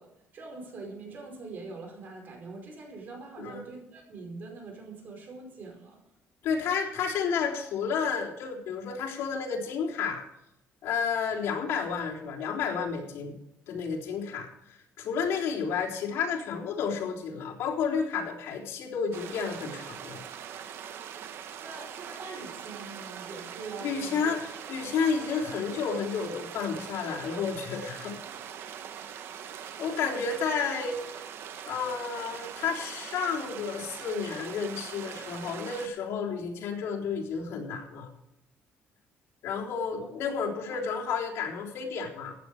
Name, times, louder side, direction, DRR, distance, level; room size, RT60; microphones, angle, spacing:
voice 1, 0.0-6.0 21.6-24.4 40.7-40.8, right 3 dB, 45° right, 2 dB, 4.9 m, -43 dB
voice 2, 6.4-10.2 10.8-13.3 13.7-20.2 23.8-24.4 24.7-28.2 29.8-31.0 31.6-38.1 39.4-42.3, left 6 dB, 80° left, -2 dB, 3.7 m, -31 dB
sound 1, 19.1-35.9, right 8 dB, 65° right, 1.1 m, -42 dB
15.5 x 10.0 x 4.9 m, 0.82 s
cardioid pair, 160°, 5 cm